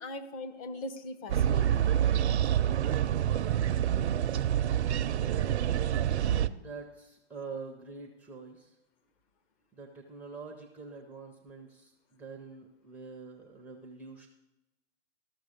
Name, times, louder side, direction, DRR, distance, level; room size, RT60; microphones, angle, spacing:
voice 1, 0.0-2.2, left 2 dB, 30° left, 8 dB, 0.8 m, -41 dB
sound 1, 1.3-6.5, right 10 dB, 75° right, 0.6 m, -27 dB
voice 2, 6.6-8.7 9.7-14.3, right 4 dB, 5° right, 2 dB, 0.5 m, -45 dB
13.5 x 6.3 x 5.0 m, 0.96 s
hypercardioid pair, 135°, 34 cm